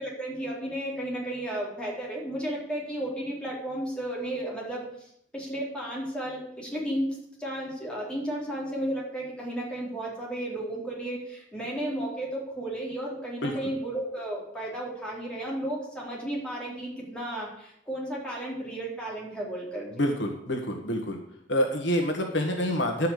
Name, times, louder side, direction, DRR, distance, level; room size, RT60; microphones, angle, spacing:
voice 1, 0.0-20.0, right 1 dB, 5° left, -5 dB, 4.2 m, -33 dB
voice 2, 19.9-21.2 21.5-23.1, equal, 70° left, 3 dB, 1.7 m, -27 dB
11.5 x 5.7 x 8.4 m, 0.73 s
head